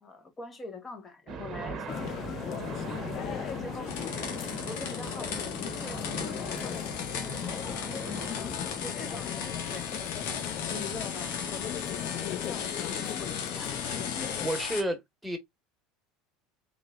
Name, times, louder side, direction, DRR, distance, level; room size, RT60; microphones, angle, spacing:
voice 1, 0.0-2.7 3.1-3.9 4.6-6.0 6.4-9.9 10.3-14.2, left 3 dB, 25° left, 1.4 m, -44 dB
sound 1, 1.3-12.0, right 3 dB, 40° right, 1.1 m, -42 dB
sound 2, 1.9-14.5, left 11 dB, 50° left, 0.3 m, -37 dB
sound 3, 3.9-14.8, left 7 dB, 75° left, 1.0 m, -37 dB
voice 2, 14.4-15.4, right 1 dB, 5° right, 1.4 m, -31 dB
3.6 x 3.1 x 2.4 m
hypercardioid pair, 85°, 0 cm